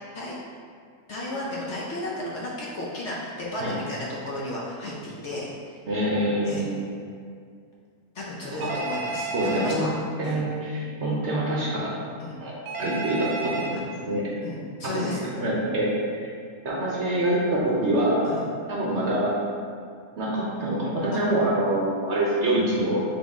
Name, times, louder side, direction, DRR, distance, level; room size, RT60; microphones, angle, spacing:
voice 1, 1.1-5.8 6.5-6.7 8.1-9.9 10.2-10.4 12.2-12.4 13.7-13.8 14.4-15.2 18.2-18.4 21.1-21.2, left 1 dB, 60° left, -5 dB, 0.8 m, -34 dB
voice 2, 5.9-6.8 8.6-8.7 9.3-9.9 10.2-11.9 12.4-12.5 12.8-14.3 14.8-16.2 16.6-18.3 18.7-19.3 20.2-23.0, right 1 dB, 55° right, -5 dB, 0.9 m, -25 dB
Telephone, 8.6-9.7 12.7-13.7, right 3 dB, 80° right, 1.1 m, -31 dB
3.9 x 3.8 x 3.5 m, 2.2 s
omnidirectional pair, 1.6 m